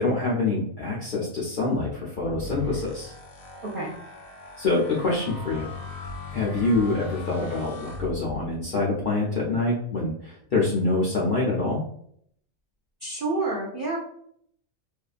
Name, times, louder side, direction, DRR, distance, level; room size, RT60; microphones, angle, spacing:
voice 1, 0.0-3.1 4.6-5.7 6.3-11.8, left 3 dB, 65° left, -5 dB, 0.5 m, -25 dB
sound 1, 2.2-8.6, left 3 dB, 80° left, 1.0 m, -38 dB
voice 2, 13.0-14.0, right 2 dB, 65° right, -4 dB, 0.5 m, -28 dB
2.6 x 2.2 x 2.4 m, 0.66 s
omnidirectional pair, 1.4 m